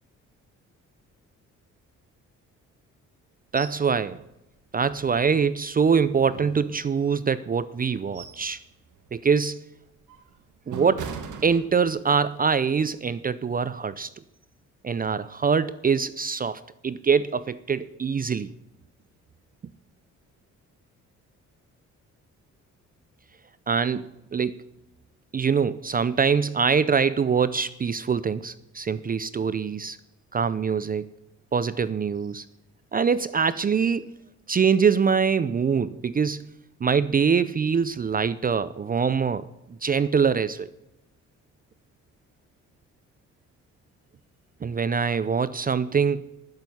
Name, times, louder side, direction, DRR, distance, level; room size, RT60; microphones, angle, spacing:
voice 1, 3.5-4.2 4.7-8.6 9.1-9.6 10.7-14.1 14.8-18.5 23.7-24.6 25.3-30.0 30.3-31.1 31.5-32.4 32.9-34.1 34.5-36.4 36.8-39.4 39.8-40.7 44.6-46.2, right 6 dB, 30° right, 16 dB, 0.5 m, -24 dB
sound 1, 3.6-3.9 4.2-4.3 4.8-5.6 6.1-7.2 7.7-8.5 8.9-9.2 9.7-12.2 12.6-12.8, right 7 dB, 80° right, 1.8 m, -40 dB
12.0 x 7.4 x 9.4 m, 0.91 s
cardioid pair, 90°, 30 cm